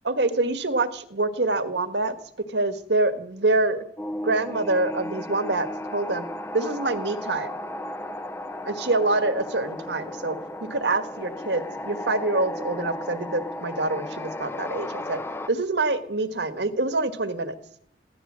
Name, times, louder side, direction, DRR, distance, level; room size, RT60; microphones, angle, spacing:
voice 1, 0.0-2.1 2.5-3.8 4.2-6.3 6.5-7.5 8.6-10.4 10.7-15.2 15.5-17.5, right 2 dB, 80° right, 10 dB, 1.6 m, -25 dB
sound 1, 4.0-15.5, left 1 dB, 15° left, 0.6 m, -35 dB
16.5 x 12.0 x 7.4 m, 0.67 s
head